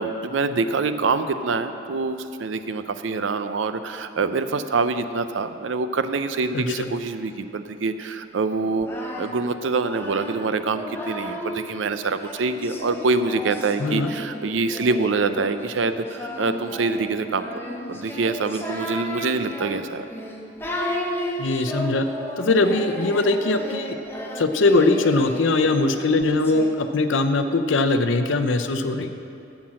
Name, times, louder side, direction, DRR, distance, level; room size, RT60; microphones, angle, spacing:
voice 1, 0.0-17.5 17.9-20.0, right 3 dB, 85° right, 10 dB, 0.6 m, -25 dB
voice 2, 6.5-6.9 13.8-14.1 21.4-22.0 22.4-24.0 24.4-29.1, left 2 dB, 85° left, 8 dB, 0.6 m, -21 dB
Singing, 8.6-11.7 12.2-26.7, equal, 10° left, 0.9 m, -34 dB
11.5 x 6.0 x 7.5 m, 2.7 s
head